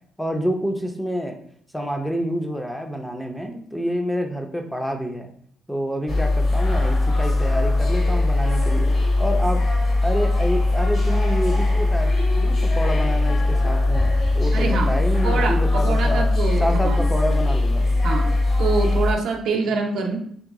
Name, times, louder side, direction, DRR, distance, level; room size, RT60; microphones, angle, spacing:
voice 1, 0.2-1.4 1.7-5.3 5.7-8.9 9.2-9.6 10.0-16.3 16.6-17.9, equal, 5° left, 3 dB, 0.4 m, -28 dB
sound 1, 6.1-19.1, left 2 dB, 50° left, 0.8 m, -20 dB
voice 2, 14.5-17.0 18.0-18.3 18.6-20.2, right 4 dB, 75° right, 3 dB, 0.6 m, -25 dB
3.1 x 2.9 x 3.5 m, 0.64 s
cardioid pair, 130°, 0 cm